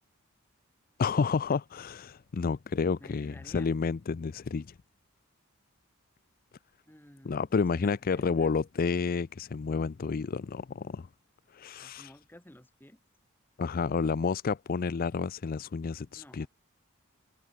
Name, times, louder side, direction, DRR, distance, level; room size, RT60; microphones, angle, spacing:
voice 1, 1.0-4.8 7.2-11.1 11.5-12.1 13.6-16.5, left 5 dB, 45° left, 0.4 m, -30 dB
voice 2, 3.0-3.7 6.9-8.5 11.8-13.0 14.0-14.3 16.2-16.5, left 1 dB, 10° left, 3.3 m, -54 dB
head